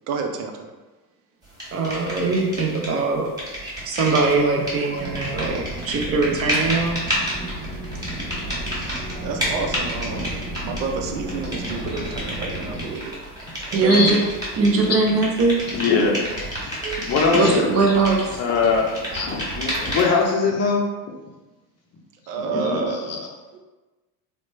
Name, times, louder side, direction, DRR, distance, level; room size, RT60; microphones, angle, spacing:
voice 1, 0.1-0.7 8.7-10.3 10.6-13.1 13.7-14.3 22.3-23.1, right 4 dB, 70° right, 3 dB, 0.6 m, -29 dB
sound 1, 1.6-3.0 3.2-20.3, equal, 10° right, 1.4 m, -30 dB
voice 2, 1.7-3.3 3.6-7.0 13.7-14.2 14.5-15.6 16.8-17.0 17.3-18.2, right 3 dB, 30° right, 1 dB, 0.5 m, -21 dB
sound 2, 5.0-12.9, right 1 dB, 10° left, 0.9 m, -33 dB
voice 3, 15.7-16.2 16.6-16.8 17.0-17.7 18.4-20.8 22.4-22.8, left 4 dB, 35° left, -1 dB, 0.6 m, -21 dB
3.0 x 2.1 x 3.1 m, 1.2 s
hypercardioid pair, 80°, 48 cm